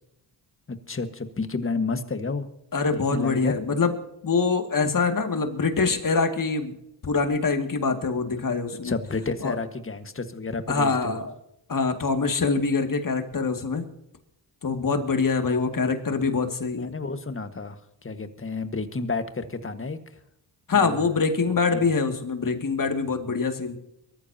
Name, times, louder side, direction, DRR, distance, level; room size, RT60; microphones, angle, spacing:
voice 1, 0.7-2.5 2.9-3.6 8.8-11.2 15.5-16.0 16.8-20.2 20.7-21.1 21.9-22.0, left 3 dB, 30° left, 9 dB, 1.6 m, -31 dB
voice 2, 2.7-4.0 4.2-6.7 7.0-8.9 9.4-9.5 10.7-11.4 11.7-13.8 14.6-16.9 20.7-23.8, left 4 dB, 50° left, 5 dB, 2.3 m, -24 dB
23.0 x 14.0 x 2.9 m, 0.81 s
cardioid pair, 75°, 43 cm